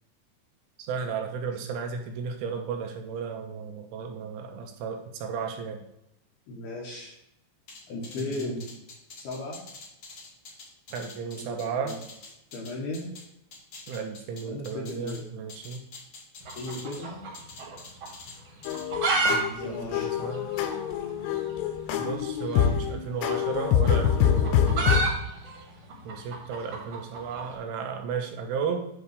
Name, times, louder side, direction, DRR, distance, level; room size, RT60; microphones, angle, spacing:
voice 1, 0.9-5.8 8.2-8.7 10.9-12.0 13.9-15.8 19.3-20.5 22.0-25.2 26.0-28.9, right 6 dB, 80° right, 4 dB, 3.1 m, -34 dB
voice 2, 6.5-7.2 7.9-8.6 9.2-9.6 11.4-12.0 12.5-13.1 14.5-15.3 16.6-17.2 19.6-20.1, left 2 dB, 65° left, -3 dB, 2.7 m, -36 dB
sound 1, 7.7-13.2 13.5-15.2 15.5-17.0 17.3-18.4 18.6-19.1, left 3 dB, 50° left, 2.2 m, -45 dB
sound 2, 16.4-17.8 18.0-18.1 18.6-19.4 19.6-19.7 20.0-20.1 20.6-20.8 21.9-22.1 23.2-27.5, right 3 dB, 50° right, 2.0 m, -28 dB
sound 3, 18.7-25.0, left 9 dB, 85° left, 3.2 m, -25 dB
9.6 x 3.4 x 6.6 m, 0.83 s
omnidirectional pair, 5.8 m